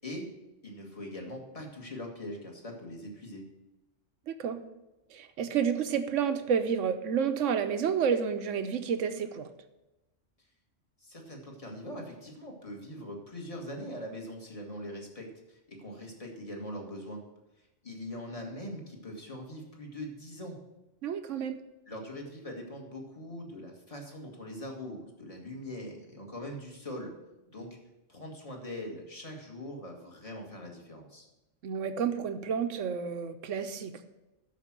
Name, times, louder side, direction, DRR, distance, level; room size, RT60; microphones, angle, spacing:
voice 1, 0.6-3.4 11.0-17.2 17.8-20.6 21.9-27.1 27.5-27.7 28.1-31.3, left 1 dB, 30° left, 1 dB, 1.8 m, -42 dB
voice 2, 4.3-4.6 5.1-9.5 21.0-21.6 31.6-34.1, right 7 dB, 85° right, 9 dB, 1.1 m, -30 dB
12.5 x 5.0 x 6.0 m, 0.99 s
omnidirectional pair, 1.2 m